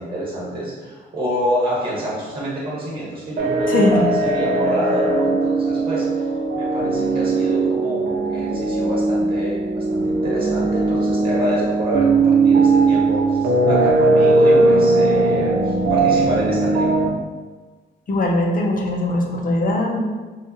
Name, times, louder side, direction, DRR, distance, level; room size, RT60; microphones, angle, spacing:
voice 1, 0.0-6.3 6.6-17.0, right 1 dB, 25° right, -5 dB, 1.3 m, -27 dB
sound 1, 3.4-17.1, right 3 dB, 50° right, 0.7 m, -18 dB
voice 2, 3.7-4.0 18.1-20.1, left 1 dB, 45° left, 1 dB, 0.7 m, -20 dB
4.3 x 2.4 x 2.8 m, 1.3 s
cardioid pair, 90°, 20 cm